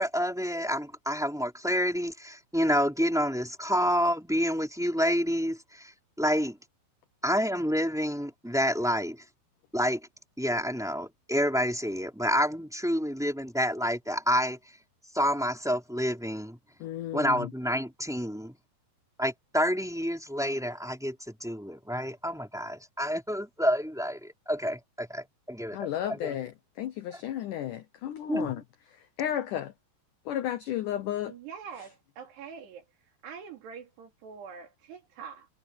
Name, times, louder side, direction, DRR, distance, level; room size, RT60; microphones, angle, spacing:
voice 1, 0.0-5.9 6.2-6.6 7.2-9.2 9.7-10.0 10.4-14.6 15.1-16.6 17.1-18.5 19.2-21.1 21.4-26.4 28.3-28.6, equal, ahead, 2.8 m, -28 dB
voice 2, 16.8-17.5 25.7-28.6 29.2-29.7 30.3-31.3 31.8-31.9, left 11 dB, 85° left, 1.8 m, -33 dB
voice 3, 31.3-32.8 33.2-35.5, right 6 dB, 75° right, 5.1 m, -44 dB
omnidirectional pair, 4.9 m